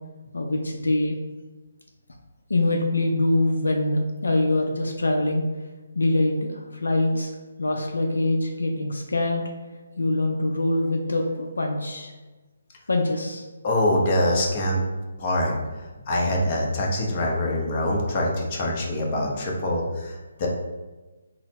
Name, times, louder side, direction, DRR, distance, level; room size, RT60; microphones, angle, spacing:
voice 1, 0.3-1.2 2.5-5.4 5.9-7.3 7.6-9.5 10.0-12.1 12.9-13.4, left 2 dB, 80° left, 2 dB, 0.5 m, -24 dB
voice 2, 13.6-14.8 15.2-15.5 16.1-20.5, left 1 dB, 35° left, -2 dB, 0.9 m, -24 dB
4.0 x 2.1 x 4.1 m, 1.2 s
figure-of-eight pair, 150°, 0 cm